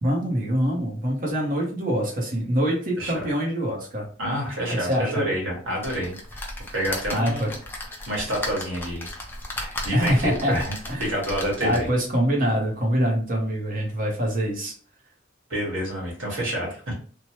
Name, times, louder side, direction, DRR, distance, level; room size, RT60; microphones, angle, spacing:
voice 1, 0.0-4.1 4.7-5.1 7.1-7.5 9.9-10.6 10.9-11.2 11.6-14.7, equal, 45° right, -1 dB, 0.8 m, -24 dB
voice 2, 4.2-6.4 6.7-7.5 8.1-9.1 9.6-10.7 11.0-11.9 15.5-16.9, equal, 75° right, -2 dB, 1.4 m, -28 dB
sound 1, 5.8-12.0 12.6-12.7 12.9-13.0, left 1 dB, 10° left, 0.6 m, -36 dB
3.0 x 2.2 x 2.9 m, 0.43 s
head